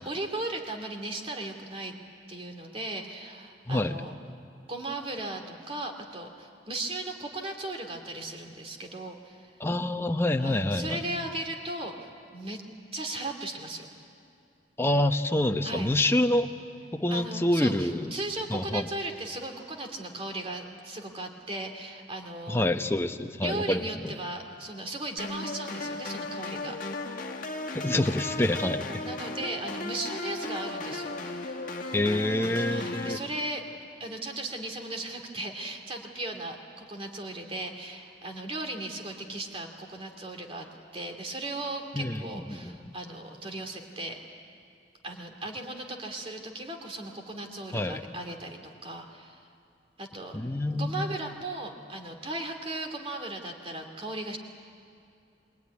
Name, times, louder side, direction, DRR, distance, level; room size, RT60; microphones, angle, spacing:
voice 1, 0.0-1.9 2.3-4.1 4.7-9.5 10.4-12.6 12.9-13.9 15.6-15.9 17.1-22.6 23.4-26.8 28.6-31.6 32.1-32.3 32.7-33.6 34.0-40.7 40.9-44.2 45.0-49.5 50.0-50.4 50.7-54.4, right 2 dB, 35° right, 4 dB, 2.5 m, -37 dB
voice 2, 3.7-4.0 9.6-11.0 14.8-16.5 16.9-18.1 18.5-18.9 22.5-24.1 27.7-28.9 31.9-33.2 41.9-42.2 42.5-42.8 47.7-48.0 50.3-51.2, left 1 dB, 15° left, 6 dB, 0.8 m, -27 dB
sound 1, 25.2-33.2, left 2 dB, 50° left, 1.6 m, -35 dB
23.0 x 21.0 x 9.6 m, 2.4 s
head